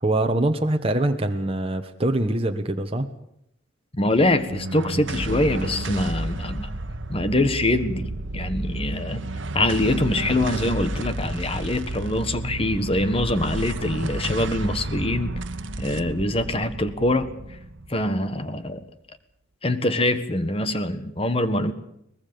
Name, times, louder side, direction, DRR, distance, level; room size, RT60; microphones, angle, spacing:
voice 1, 0.0-3.1, right 1 dB, 30° right, 4 dB, 1.3 m, -23 dB
voice 2, 3.9-6.7 7.1-9.2 9.5-15.3 15.8-17.3 17.9-18.8 19.6-21.7, left 1 dB, 30° left, 11 dB, 1.5 m, -24 dB
sound 1, 4.2-18.8, right 2 dB, 70° right, 1.3 m, -31 dB
23.0 x 20.5 x 7.0 m, 0.76 s
head